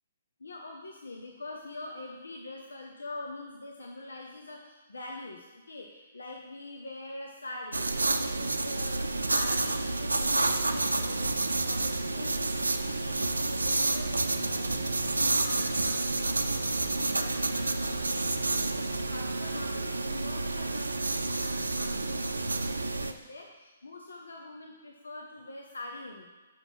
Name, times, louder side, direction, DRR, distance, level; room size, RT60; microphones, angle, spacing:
voice 1, 0.4-26.3, left 2 dB, 80° left, 0 dB, 0.9 m, -44 dB
sound 1, 7.7-23.1, right 2 dB, 90° right, 0.5 m, -29 dB
5.6 x 5.4 x 6.0 m, 1.3 s
figure-of-eight pair, 130°, 0 cm